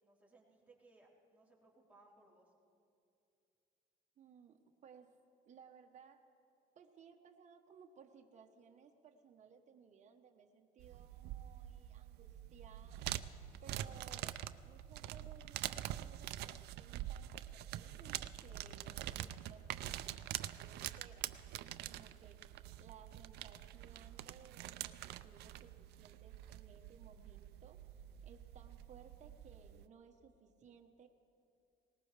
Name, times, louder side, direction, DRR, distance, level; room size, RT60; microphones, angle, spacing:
voice 1, 0.0-2.5, right 2 dB, 10° right, -5 dB, 3.5 m, -66 dB
voice 2, 4.2-5.1 5.5-6.2 6.7-27.8 28.2-31.1, right 6 dB, 45° right, 3 dB, 1.2 m, -61 dB
sound 1, 10.8-29.9, right 13 dB, 75° right, 0.5 m, -46 dB
20.0 x 19.0 x 3.4 m, 2.5 s
cardioid pair, 110°, 17 cm